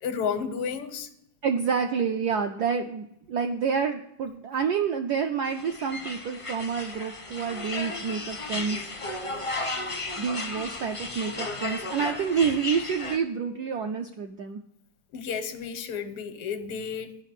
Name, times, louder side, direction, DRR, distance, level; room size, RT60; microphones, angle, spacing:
voice 1, 0.0-1.1 15.1-17.2, left 6 dB, 85° left, 9 dB, 1.8 m, -32 dB
voice 2, 1.4-8.9 10.2-14.6, right 6 dB, 80° right, 5 dB, 0.9 m, -28 dB
sound 1, 5.4-13.2, left 2 dB, 40° left, 0.4 m, -34 dB
10.0 x 5.8 x 7.5 m, 0.78 s
omnidirectional pair, 2.4 m